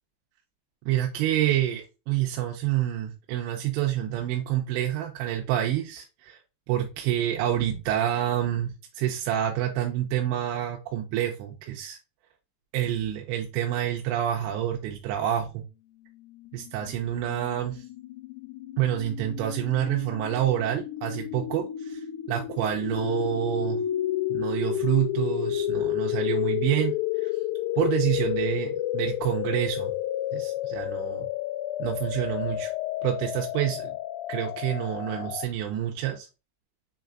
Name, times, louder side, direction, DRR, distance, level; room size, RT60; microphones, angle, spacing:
voice 1, 0.9-6.4 6.7-12.0 12.7-15.6 16.5-17.8 18.8-23.8 24.3-27.3 27.8-29.9 30.3-31.3 31.8-32.7 33.0-34.0 34.3-36.3, right 12 dB, 90° right, 1 dB, 2.9 m, -28 dB
sound 1, 16.3-35.5, left 12 dB, 85° left, 2.8 m, -31 dB
6.7 x 3.2 x 2.4 m, 0.29 s
omnidirectional pair, 5.1 m